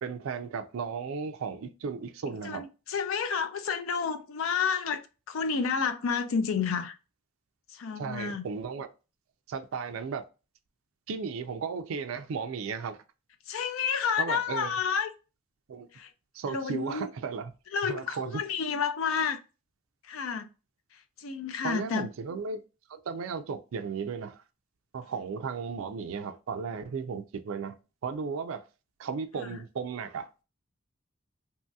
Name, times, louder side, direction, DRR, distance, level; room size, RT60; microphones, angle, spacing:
voice 1, 0.0-2.6 8.0-8.9 9.5-10.2 11.1-13.0 14.2-14.7 15.7-15.9 16.3-17.5 17.8-18.4 21.6-22.6 22.9-24.4 24.9-27.8 28.0-28.7 29.0-30.3, right 5 dB, 80° right, 0.4 m, -35 dB
voice 2, 2.3-5.0 5.3-6.9 7.7-8.4 13.5-15.1 15.9-16.1 16.5-17.1 17.7-19.4 20.0-20.5 20.9-22.1, left 6 dB, 80° left, 0.4 m, -30 dB
3.0 x 2.7 x 2.2 m
head